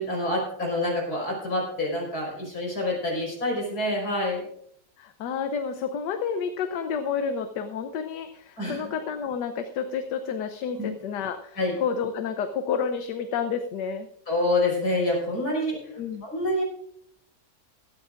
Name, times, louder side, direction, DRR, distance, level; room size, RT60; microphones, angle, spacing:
voice 1, 0.0-4.4 8.6-8.8 10.8-10.9 11.6-11.8 14.3-15.8 16.2-16.6, left 1 dB, 60° left, -1 dB, 5.4 m, -27 dB
voice 2, 5.0-14.1 15.9-16.2, left 6 dB, 80° left, 8 dB, 1.4 m, -30 dB
17.5 x 13.5 x 2.5 m, 0.71 s
omnidirectional pair, 1.8 m